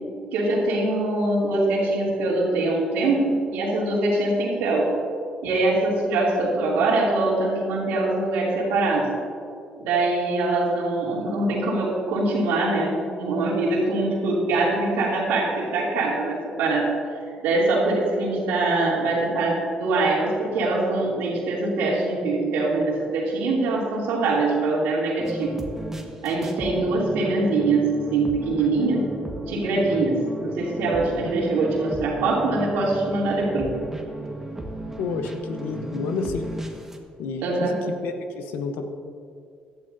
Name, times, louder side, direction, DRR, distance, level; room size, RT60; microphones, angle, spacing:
voice 1, 0.3-4.9 5.4-9.1 9.8-16.9 17.4-25.6 26.2-29.1 29.5-33.7 37.4-37.7, right 2 dB, 90° right, -4 dB, 2.9 m, -23 dB
sound 1, 25.2-37.0, right 1 dB, 15° right, 1.6 m, -35 dB
voice 2, 35.0-36.5 37.2-38.9, left 4 dB, 85° left, 6 dB, 1.0 m, -30 dB
17.0 x 12.0 x 2.8 m, 2.4 s
supercardioid pair, 75°, 3 cm